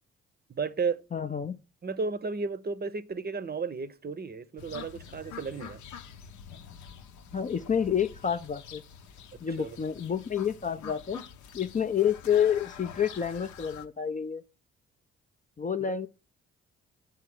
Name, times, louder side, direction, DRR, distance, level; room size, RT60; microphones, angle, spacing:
voice 1, 0.6-1.0 1.8-5.8 9.6-9.8 15.9-16.0, right 4 dB, 30° right, 0.7 m, -33 dB
voice 2, 1.1-1.6 7.3-8.8 9.4-11.2 11.5-14.4 15.6-16.1, left 8 dB, 25° left, 0.5 m, -29 dB
sound 1, 4.6-13.9, left 7 dB, 65° left, 0.8 m, -46 dB
6.8 x 3.7 x 6.2 m
hypercardioid pair, 40°, 31 cm